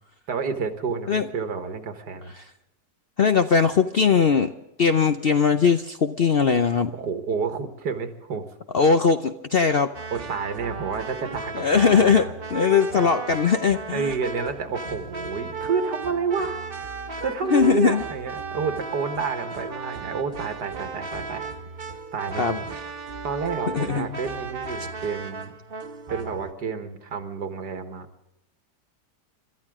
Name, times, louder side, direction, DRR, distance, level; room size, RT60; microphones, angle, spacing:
voice 1, 0.3-2.3 6.9-8.4 10.1-12.3 13.0-13.1 13.9-16.6 17.2-21.5 22.1-22.7 23.2-25.5 26.1-28.1, right 5 dB, 85° right, 7 dB, 2.2 m, -29 dB
voice 2, 3.2-4.5 4.8-6.9 8.7-9.9 11.5-14.1 17.5-18.0 22.4-22.6 23.7-24.2, left 6 dB, 55° left, 8 dB, 0.6 m, -20 dB
sound 1, 9.9-26.5, right 4 dB, 40° right, 1.1 m, -35 dB
27.5 x 13.0 x 3.7 m, 0.90 s
omnidirectional pair, 1.7 m